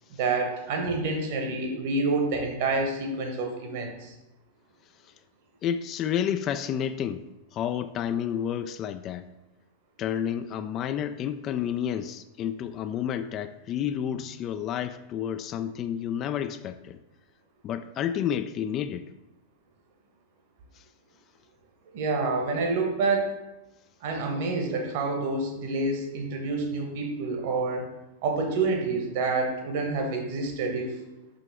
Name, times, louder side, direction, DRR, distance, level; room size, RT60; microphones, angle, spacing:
voice 1, 0.2-4.1 21.9-23.3 24.0-27.9 28.2-30.9, right 3 dB, 50° right, 3 dB, 1.2 m, -28 dB
voice 2, 5.6-7.3 7.5-9.3 10.0-17.0 17.6-19.1, left 9 dB, 35° left, 11 dB, 0.3 m, -30 dB
5.7 x 5.2 x 3.5 m, 0.98 s
figure-of-eight pair, 90°, 0 cm